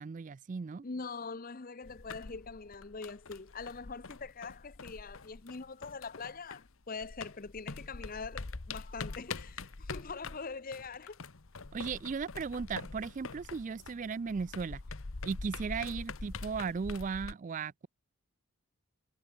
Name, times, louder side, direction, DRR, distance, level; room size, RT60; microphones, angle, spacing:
voice 1, 0.0-0.8 11.7-14.8 15.2-17.9, right 5 dB, 35° right, 0.3 m, -36 dB
voice 2, 0.8-11.2 15.9-16.0, left 4 dB, 40° left, 0.7 m, -43 dB
sound 1, 1.8-6.7 7.0-17.3, left 4 dB, 65° left, 1.1 m, -44 dB
head